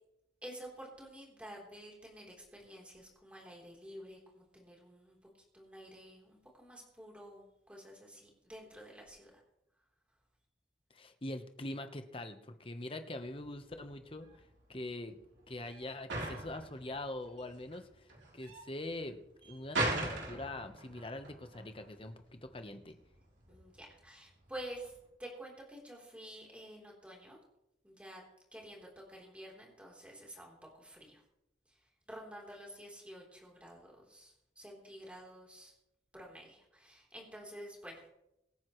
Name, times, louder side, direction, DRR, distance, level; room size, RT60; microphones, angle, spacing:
voice 1, 0.4-5.2 5.5-9.4 23.5-27.4 27.8-28.2 28.5-31.2 31.7-35.7 36.1-38.1, right 1 dB, 5° right, -2 dB, 3.6 m, -50 dB
voice 2, 10.9-14.3 14.7-15.2 15.5-18.1 18.3-23.0, left 1 dB, 30° left, 7 dB, 1.1 m, -43 dB
sound 1, 13.2-25.1, right 2 dB, 80° right, 3.7 m, -41 dB
24.0 x 9.7 x 3.2 m, 0.85 s
head